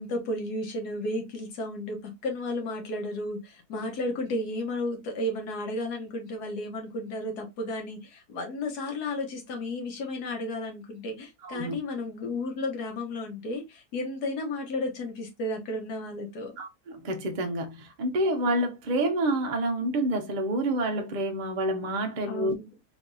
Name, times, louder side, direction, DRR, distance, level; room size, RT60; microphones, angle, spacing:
voice 1, 0.0-16.5 22.3-22.7, left 1 dB, 75° left, 1.5 m, -33 dB
voice 2, 11.4-11.8 16.6-22.5, right 1 dB, 65° right, 0.4 m, -28 dB
3.4 x 3.0 x 2.5 m
omnidirectional pair, 1.8 m